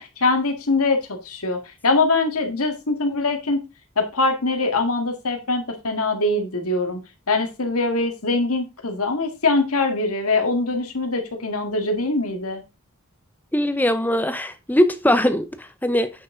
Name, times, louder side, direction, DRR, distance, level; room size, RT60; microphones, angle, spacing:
voice 1, 0.0-3.6 4.0-7.0 7.3-12.6, left 3 dB, 85° left, 1.9 m, -23 dB
voice 2, 13.5-16.1, left 1 dB, 10° left, 0.7 m, -21 dB
8.9 x 6.3 x 3.8 m
head